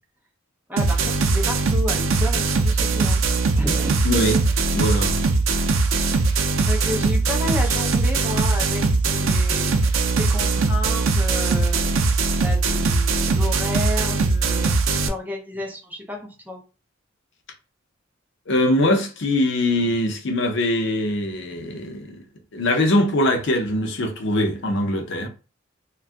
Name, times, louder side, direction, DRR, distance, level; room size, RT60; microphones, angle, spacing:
voice 1, 0.7-3.2 3.5-4.0 5.5-5.8 6.6-9.7 10.1-12.1 12.4-14.8 15.1-16.6, left 2 dB, 10° right, 0.6 m, -31 dB
sound 1, 0.8-15.1, right 3 dB, 85° right, 0.5 m, -21 dB
voice 2, 4.0-5.2 18.5-22.2 22.5-25.3, left 1 dB, 65° left, 0.6 m, -22 dB
2.5 x 2.3 x 3.4 m
head